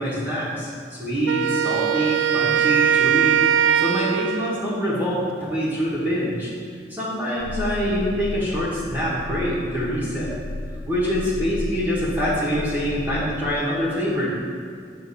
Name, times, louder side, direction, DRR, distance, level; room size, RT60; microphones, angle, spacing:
voice 1, 0.0-6.5 6.9-10.3 10.9-14.3, equal, 10° right, -8 dB, 1.7 m, -25 dB
Wind instrument woodwind instrument, 1.3-4.6, right 9 dB, 85° right, 0.3 m, -20 dB
sound 1, 7.4-13.5, left 1 dB, 55° left, 0.5 m, -33 dB
9.2 x 3.7 x 7.0 m, 2.3 s
head